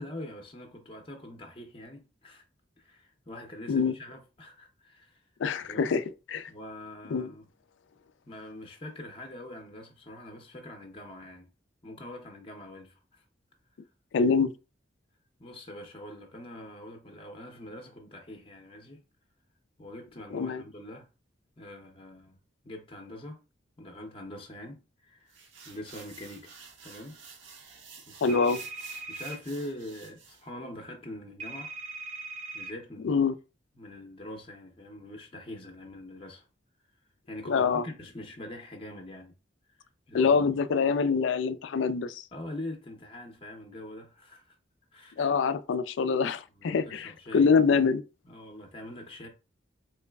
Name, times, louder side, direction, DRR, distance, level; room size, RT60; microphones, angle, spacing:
voice 1, 0.0-2.4 2.8-5.2 5.7-5.9 6.5-7.4 8.3-11.5 11.8-13.2 15.4-19.0 19.8-21.1 21.6-22.4 22.6-23.4 23.8-25.3 25.6-26.5 26.8-27.2 28.0-28.6 29.1-31.7 32.5-33.2 33.8-36.5 37.3-39.3 39.8-40.5 42.3-44.6 44.9-45.3 46.6-47.5 48.2-49.3, left 1 dB, 30° left, 0.6 m, -43 dB
voice 2, 5.4-6.0 6.3-6.5 7.1-7.3 14.1-14.5 20.3-20.6 28.2-28.6 33.0-33.3 37.5-37.8 40.1-42.2 45.2-48.0, left 5 dB, 75° left, 0.4 m, -25 dB
sound 1, 25.3-30.4, right 5 dB, 75° right, 0.8 m, -50 dB
sound 2, 28.3-29.4 31.4-32.7, right 3 dB, 35° right, 0.7 m, -40 dB
3.9 x 3.1 x 2.2 m
head